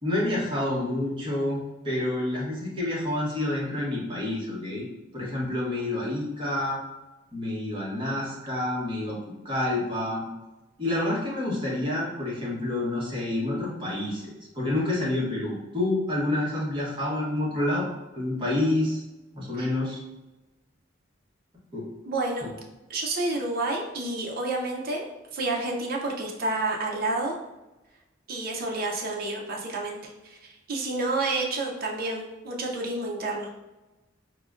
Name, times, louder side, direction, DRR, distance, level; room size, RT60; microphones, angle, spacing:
voice 1, 0.0-1.6 1.8-4.9 5.1-6.8 7.3-9.2 9.4-10.2 10.8-17.9 18.1-19.0 19.3-20.0 21.7-21.9 22.4-22.5, left 1 dB, 25° right, -5 dB, 1.0 m, -28 dB
voice 2, 22.0-22.5 22.9-25.0 25.3-27.3 28.3-30.4 30.7-33.5, right 2 dB, 50° right, -1 dB, 0.5 m, -29 dB
4.8 x 2.1 x 2.4 m, 1.0 s
head